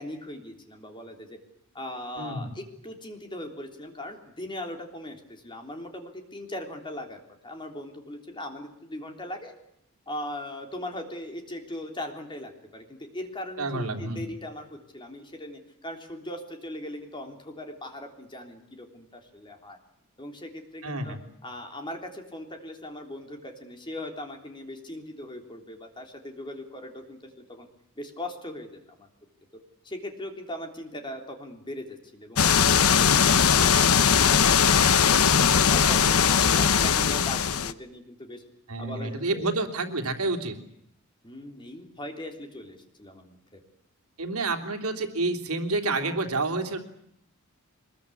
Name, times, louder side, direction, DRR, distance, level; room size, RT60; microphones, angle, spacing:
voice 1, 0.0-1.4 1.7-7.2 7.4-9.5 10.1-19.8 20.2-21.2 21.4-27.7 28.0-29.1 29.8-34.6 34.8-38.4 38.8-39.5 41.2-43.6, left 1 dB, 20° left, 4 dB, 3.5 m, -39 dB
voice 2, 2.2-2.5 13.6-14.2 20.8-21.2 38.7-40.6 44.2-46.8, right 2 dB, 80° right, 5 dB, 3.2 m, -29 dB
sound 1, 32.4-37.7, left 7 dB, 80° left, 1.0 m, -20 dB
23.5 x 21.5 x 8.6 m, 0.74 s
head